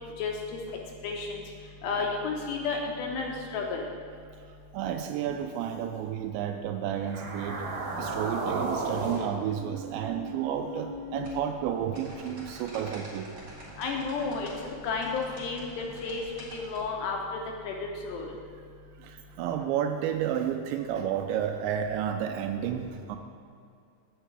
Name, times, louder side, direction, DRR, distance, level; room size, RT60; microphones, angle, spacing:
voice 1, 0.2-0.6 1.0-1.4 1.8-3.9 13.8-16.2 16.5-18.3, left 4 dB, 75° left, 1 dB, 2.7 m, -32 dB
voice 2, 4.7-7.7 8.0-13.3 19.0-23.2, right 9 dB, 85° right, 6 dB, 2.7 m, -31 dB
sound 1, 7.0-11.3, right 3 dB, 55° right, 2.5 m, -35 dB
sound 2, 11.2-16.8, right 1 dB, 30° right, 1.7 m, -47 dB
7.9 x 6.2 x 8.0 m, 2.3 s
omnidirectional pair, 5.4 m